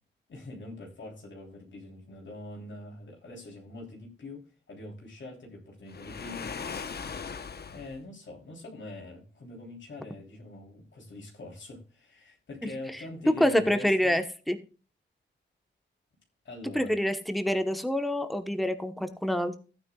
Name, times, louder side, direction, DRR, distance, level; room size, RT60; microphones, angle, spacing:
voice 1, 0.3-6.6 7.7-14.2 16.4-16.9, left 2 dB, 70° left, 3.3 m, -44 dB
Waves surf, 5.9-8.0, left 5 dB, 55° left, 0.9 m, -38 dB
voice 2, 13.4-14.6 16.7-19.6, equal, ahead, 1.0 m, -26 dB
15.0 x 9.6 x 2.3 m
wide cardioid pair, 145°, 20 cm